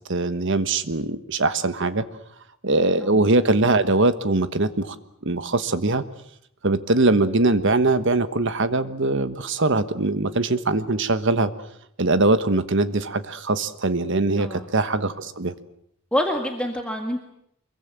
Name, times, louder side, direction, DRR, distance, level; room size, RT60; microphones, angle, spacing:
voice 1, 0.1-2.1 2.6-4.9 5.2-6.0 6.6-11.5 12.0-15.5, right 2 dB, 55° right, 12 dB, 1.3 m, -22 dB
voice 2, 16.1-17.2, left 1 dB, 5° left, 2 dB, 1.8 m, -26 dB
24.5 x 23.0 x 7.5 m, 0.73 s
head